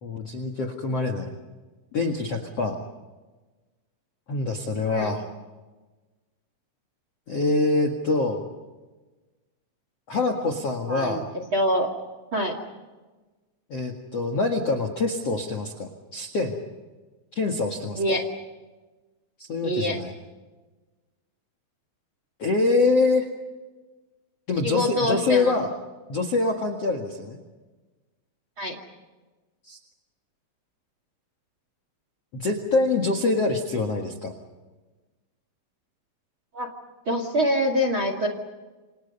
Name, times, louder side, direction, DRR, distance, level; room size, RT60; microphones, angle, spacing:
voice 1, 0.0-1.3 1.9-2.8 4.3-5.2 7.3-8.4 10.1-11.2 13.7-16.6 17.3-18.0 19.4-20.1 22.4-23.3 24.5-25.7 26.1-27.4 29.7-29.8 32.3-34.3, left 3 dB, 55° left, 7 dB, 1.8 m, -25 dB
voice 2, 4.9-5.2 10.9-11.2 11.5-11.9 12.3-12.6 17.9-18.2 19.6-20.0 24.6-25.6 28.6-28.8 36.5-36.7 37.1-38.3, equal, 40° right, 5 dB, 1.9 m, -25 dB
28.5 x 27.5 x 5.5 m, 1.2 s
omnidirectional pair, 5.7 m